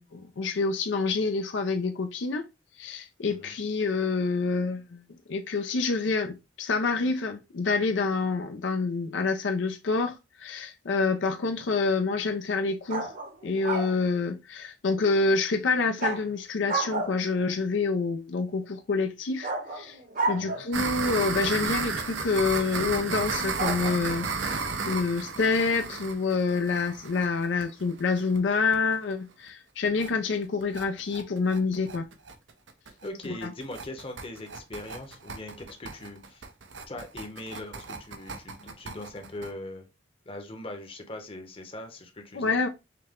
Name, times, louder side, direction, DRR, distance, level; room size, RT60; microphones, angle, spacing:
voice 1, 0.0-2.5 2.8-5.0 5.3-13.1 13.4-20.0 20.2-32.1 33.4-33.5 42.3-42.7, left 4 dB, 75° left, 0.5 m, -27 dB
sound 1, 12.9-14.0 16.0-16.2 16.7-17.4 19.4-20.9 23.6-23.9, right 3 dB, 50° right, 0.9 m, -31 dB
voice 2, 20.3-20.6 33.0-36.4 36.9-39.9 40.3-42.6, left 1 dB, 30° left, 0.9 m, -41 dB
sound 2, 20.7-28.4 28.7-28.8 29.1-29.2 29.5-29.6 29.9-30.1 30.4-39.5, right 4 dB, 85° right, 0.7 m, -33 dB
5.7 x 2.2 x 3.6 m
head